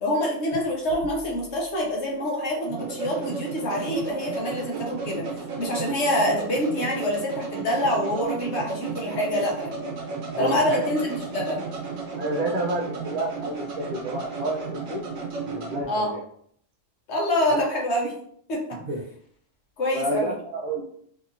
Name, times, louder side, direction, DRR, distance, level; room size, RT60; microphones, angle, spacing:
voice 1, 0.0-5.3 5.6-9.8 10.4-11.6 15.9-16.1 17.1-18.1 18.5-18.8 19.8-20.3, left 1 dB, 60° left, -2 dB, 1.1 m, -26 dB
sound 1, 0.5-15.8, right 4 dB, 85° right, 1.2 m, -34 dB
voice 2, 10.3-11.0 12.2-15.0 15.4-16.2 17.5-17.6 18.9-19.0 19.9-20.8, right 1 dB, 55° right, 2 dB, 0.4 m, -30 dB
2.8 x 2.8 x 2.5 m, 0.64 s
omnidirectional pair, 1.3 m